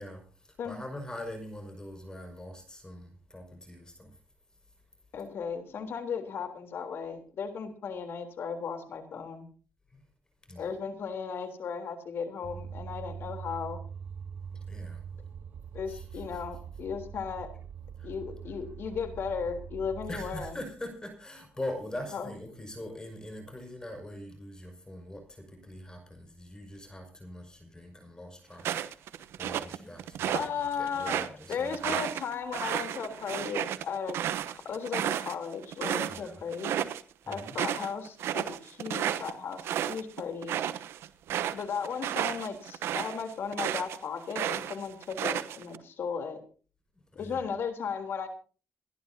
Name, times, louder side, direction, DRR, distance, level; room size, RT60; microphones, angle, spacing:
voice 1, 0.0-4.2 4.6-4.7 9.9-10.0 10.4-10.7 14.5-15.0 15.9-16.4 18.0-18.1 20.1-32.0 36.1-36.4 37.3-37.6 47.1-47.5, left 1 dB, 20° left, 4 dB, 5.7 m, -43 dB
voice 2, 5.1-9.5 10.6-13.8 15.7-17.5 18.0-20.5 22.1-22.3 30.3-34.2 34.5-36.7 37.3-40.6 41.5-46.4 47.2-48.3, left 6 dB, 70° left, 7 dB, 3.5 m, -36 dB
sound 1, 12.4-20.5, right 7 dB, 50° right, 0.6 m, -43 dB
sound 2, 28.6-30.5 30.9-36.2 36.5-37.0 37.3-44.0 44.3-45.8, right 10 dB, 90° right, 1.0 m, -32 dB
29.0 x 11.5 x 2.8 m, 0.38 s
cardioid pair, 85°, 4 cm